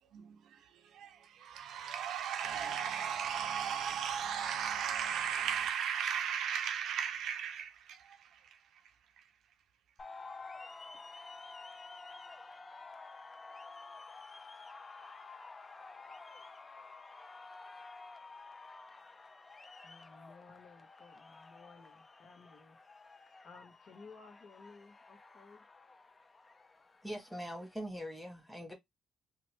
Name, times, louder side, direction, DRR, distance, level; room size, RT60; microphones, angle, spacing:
voice 1, 0.0-9.3, right 8 dB, 75° right, 0.5 m, -37 dB
sound 1, 10.0-27.7, left 3 dB, 30° left, 0.5 m, -51 dB
voice 2, 19.8-22.8 23.4-25.6, left 4 dB, 55° left, 1.0 m, -57 dB
voice 3, 27.0-28.7, equal, ahead, 1.3 m, -42 dB
2.9 x 2.2 x 2.9 m
cardioid pair, 90°, 0 cm